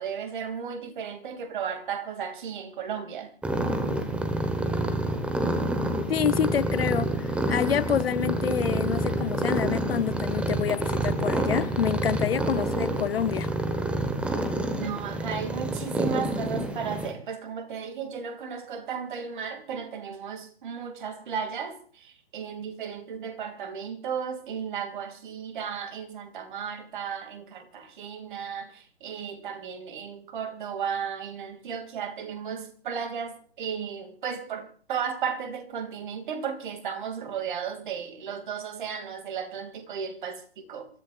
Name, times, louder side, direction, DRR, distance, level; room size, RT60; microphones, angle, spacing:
voice 1, 0.0-3.3 14.8-40.9, right 7 dB, 45° right, 2.6 m, -34 dB
sound 1, 3.4-17.1, right 1 dB, 5° right, 1.1 m, -28 dB
voice 2, 6.1-13.5, left 8 dB, 60° left, 0.9 m, -28 dB
27.5 x 14.5 x 2.5 m
figure-of-eight pair, 135°, 34 cm